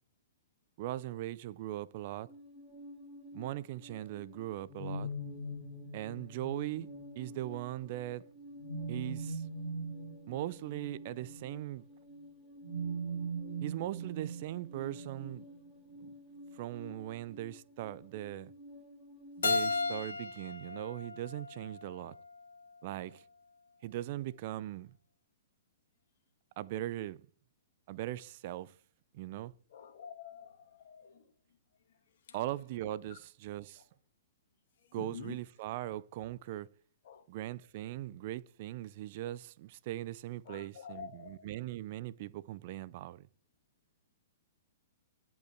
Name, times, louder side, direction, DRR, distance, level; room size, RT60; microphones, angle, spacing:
voice 1, 0.8-2.3 3.3-5.1 5.9-6.9 7.2-8.3 8.9-9.4 10.3-11.8 13.6-15.4 16.0-16.1 16.5-18.5 19.4-22.2 22.8-23.2 23.8-24.9 26.6-27.2 27.9-28.7 29.1-29.5 32.3-33.8 34.9-36.7 37.3-43.3, right 14 dB, 50° right, 0.4 m, -40 dB
sound 1, 2.3-20.0, right 2 dB, ahead, 4.5 m, -44 dB
Keyboard (musical), 19.4-22.3, left 4 dB, 85° left, 1.3 m, -35 dB
voice 2, 29.7-30.5 30.9-31.1 33.1-33.2 35.0-35.3 37.1-37.2 40.5-41.4, left 7 dB, 60° left, 2.2 m, -47 dB
10.5 x 5.4 x 4.4 m
hypercardioid pair, 130°, 0 cm